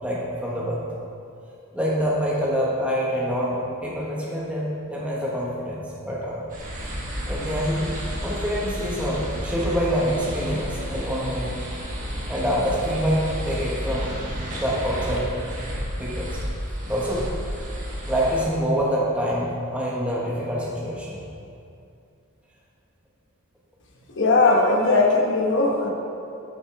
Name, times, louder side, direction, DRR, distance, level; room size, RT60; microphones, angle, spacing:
voice 1, 0.0-0.8 1.7-6.4 7.3-7.9 8.2-11.5 12.3-14.1 14.5-15.3 16.0-16.4 16.9-17.3 18.1-21.2 24.5-24.6, equal, 5° right, -5 dB, 1.3 m, -26 dB
sound 1, 6.5-18.4, equal, 35° right, 1.4 m, -31 dB
voice 2, 24.2-25.9, left 3 dB, 55° left, 0 dB, 1.1 m, -19 dB
9.2 x 5.6 x 4.8 m, 2.6 s
head